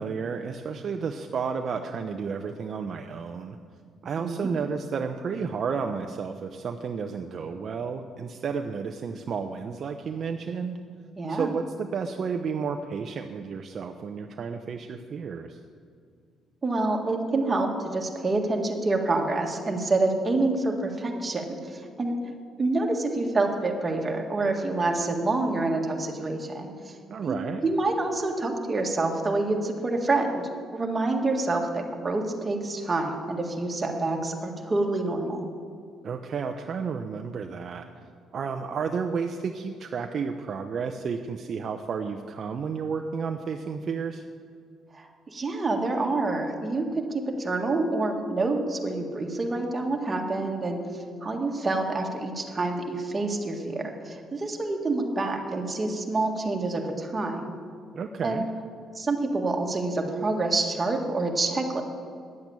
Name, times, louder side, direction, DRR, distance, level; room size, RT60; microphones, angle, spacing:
voice 1, 0.0-3.6 4.0-10.8 11.3-15.6 27.1-27.6 36.0-37.9 38.3-44.3 57.9-58.5, right 5 dB, 50° right, 5 dB, 0.6 m, -32 dB
voice 2, 4.2-4.5 11.2-11.5 16.6-22.1 22.6-26.9 27.2-35.4 44.9-50.8 51.2-57.4 58.2-58.4 59.0-61.8, right 2 dB, 25° right, 1 dB, 1.8 m, -27 dB
10.5 x 8.0 x 8.7 m, 2.2 s
cardioid pair, 105°, 0 cm